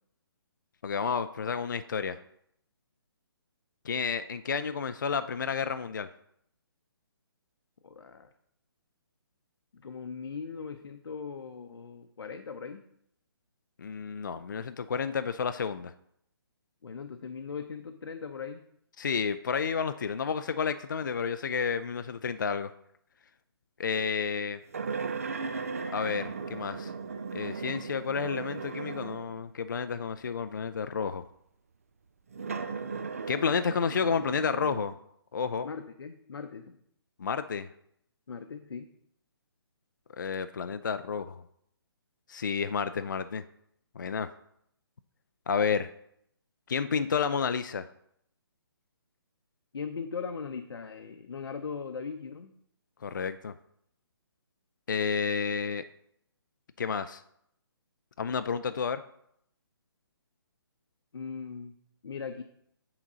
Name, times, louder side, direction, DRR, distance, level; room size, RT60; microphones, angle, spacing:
voice 1, 0.8-2.2 3.8-6.1 13.8-15.9 19.0-22.7 23.8-24.6 25.9-26.9 27.3-31.2 33.3-34.9 35.3-35.7 37.2-37.7 40.2-41.4 42.3-43.4 44.0-44.3 45.5-45.9 46.7-47.9 53.0-53.5 54.9-55.9 56.8-57.2 58.2-59.0, left 6 dB, 50° left, 11 dB, 0.4 m, -31 dB
voice 2, 7.8-8.3 9.7-12.8 16.8-18.6 35.6-36.8 38.3-38.9 49.7-52.5 61.1-61.7 62.0-62.4, left 5 dB, 85° left, 7 dB, 0.7 m, -39 dB
sound 1, 24.7-29.4 30.1-30.2 32.3-34.9, right 5 dB, 35° right, 0.4 m, -37 dB
8.8 x 4.0 x 6.1 m, 0.74 s
hypercardioid pair, 180°, 13 cm